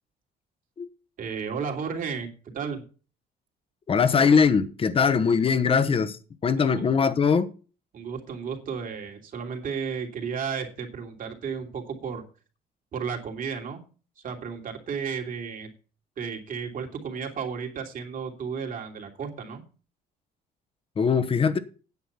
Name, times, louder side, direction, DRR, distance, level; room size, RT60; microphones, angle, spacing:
voice 1, 1.2-2.8 6.6-6.8 7.9-12.2 12.9-13.8 14.2-15.7 16.2-19.6, right 6 dB, 55° right, 2.9 m, -33 dB
voice 2, 3.9-7.5 21.0-21.6, left 6 dB, 35° left, 1.1 m, -21 dB
9.5 x 8.3 x 5.8 m
cardioid pair, 110°, 17 cm